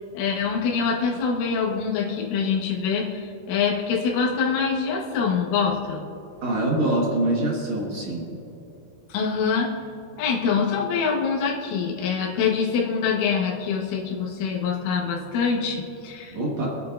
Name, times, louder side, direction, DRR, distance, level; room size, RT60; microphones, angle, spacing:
voice 1, 0.1-6.0 9.1-9.7 10.2-16.4, left 6 dB, 90° left, -2 dB, 4.0 m, -25 dB
voice 2, 6.4-8.3 16.3-16.7, right 1 dB, 60° right, -3 dB, 1.9 m, -24 dB
27.0 x 9.5 x 2.7 m, 2.9 s
omnidirectional pair, 5.5 m